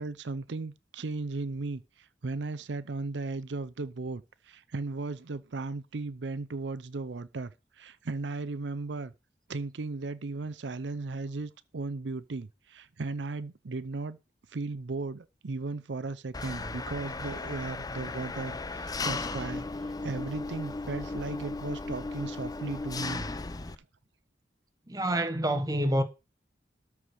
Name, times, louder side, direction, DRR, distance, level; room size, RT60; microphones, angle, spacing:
voice 1, 0.0-9.1 9.5-14.2 14.5-23.3, right 3 dB, 85° right, 0.6 m, -36 dB
Engine, 16.3-23.7, left 3 dB, 20° left, 0.6 m, -36 dB
voice 2, 24.9-26.0, right 1 dB, 20° right, 1.3 m, -27 dB
13.0 x 4.8 x 6.4 m
head